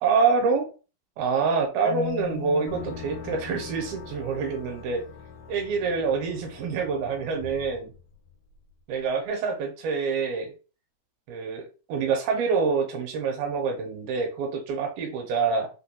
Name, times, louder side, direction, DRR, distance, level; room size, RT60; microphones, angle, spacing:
voice 1, 0.0-0.7 1.2-5.0 5.5-7.9 8.9-10.5 11.3-15.7, right 5 dB, 80° right, 3 dB, 2.5 m, -26 dB
Marimba xylophone, 1.9-4.8, left 13 dB, 75° left, 2.3 m, -38 dB
sound 1, 2.7-8.6, left 5 dB, 90° left, 1.6 m, -43 dB
5.8 x 2.2 x 2.3 m, 0.33 s
omnidirectional pair, 4.4 m